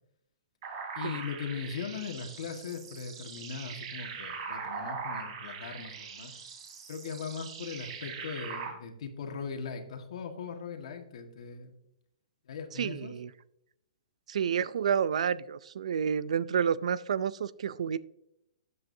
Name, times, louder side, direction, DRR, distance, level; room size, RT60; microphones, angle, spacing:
sound 1, 0.6-8.7, right 5 dB, 45° right, 3.3 m, -41 dB
voice 1, 0.9-6.3 6.9-11.7 12.5-13.1, left 6 dB, 65° left, 5 dB, 1.7 m, -39 dB
voice 2, 12.7-13.3 14.3-18.0, right 7 dB, 75° right, 19 dB, 0.4 m, -30 dB
12.5 x 7.9 x 2.7 m, 0.79 s
hypercardioid pair, 150°, 4 cm